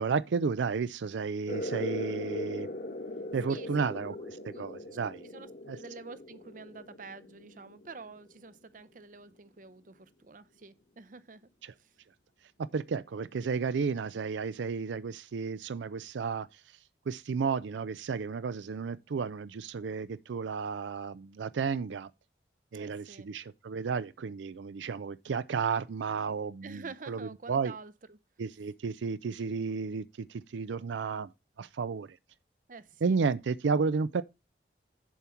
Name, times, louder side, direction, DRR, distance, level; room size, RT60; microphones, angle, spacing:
voice 1, 0.0-2.7 3.3-5.3 5.7-5.8 11.6-11.7 12.7-16.6 17.1-22.1 22.7-27.7 28.4-31.3 31.6-32.2 33.0-34.2, right 5 dB, 85° right, 0.4 m, -32 dB
sound 1, 1.5-8.6, left 1 dB, 50° left, 1.3 m, -40 dB
voice 2, 4.4-4.9 5.3-5.5 5.7-11.5 11.8-11.9 22.7-23.3 26.6-28.2 32.7-33.2, right 4 dB, 45° right, 0.6 m, -48 dB
7.3 x 4.4 x 6.9 m
head